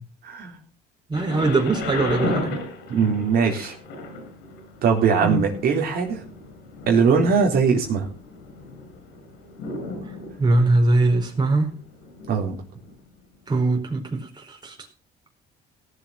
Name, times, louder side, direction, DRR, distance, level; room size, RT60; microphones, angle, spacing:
voice 1, 0.2-0.6 2.9-3.7 4.8-6.2 6.9-8.1 12.3-12.6, right 6 dB, 65° right, 1 dB, 3.9 m, -20 dB
Thunder, 1.1-13.0 13.7-13.8, left 2 dB, 85° left, 6.2 m, -35 dB
voice 2, 1.1-2.6 5.2-5.5 10.0-10.1 10.4-11.7 13.5-14.8, right 2 dB, 25° right, 2 dB, 4.5 m, -21 dB
17.0 x 7.8 x 5.7 m, 0.33 s
cardioid pair, 110°, 17 cm